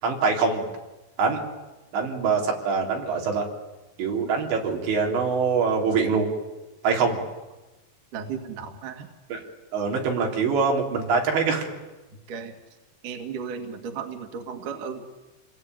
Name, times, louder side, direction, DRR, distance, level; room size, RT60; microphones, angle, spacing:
voice 1, 0.0-0.6 1.2-1.4 1.9-3.4 4.0-6.3 6.8-7.2 9.3-9.4 9.7-11.7, right 5 dB, 90° right, 0 dB, 5.8 m, -24 dB
voice 2, 8.1-9.1 12.3-12.6 13.0-15.0, right 6 dB, 55° right, 5 dB, 3.2 m, -35 dB
28.0 x 20.5 x 9.3 m, 1.1 s
omnidirectional pair, 5.0 m